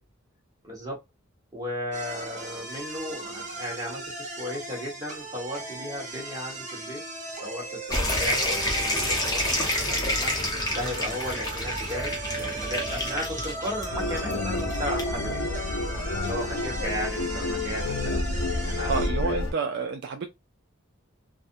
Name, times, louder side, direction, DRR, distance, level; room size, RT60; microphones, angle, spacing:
voice 1, 0.6-1.0 1.5-7.0 7.4-10.3 10.7-15.4 16.2-19.0 19.2-19.4, left 1 dB, 20° right, 1.1 m, -35 dB
sound 1, 1.9-19.1, right 2 dB, 35° right, 0.7 m, -37 dB
sound 2, 7.9-19.2, left 1 dB, 20° left, 0.8 m, -30 dB
sound 3, 13.9-19.5, left 2 dB, 80° left, 0.5 m, -29 dB
voice 2, 18.9-20.3, right 5 dB, 55° right, 0.3 m, -29 dB
2.4 x 2.1 x 2.6 m
head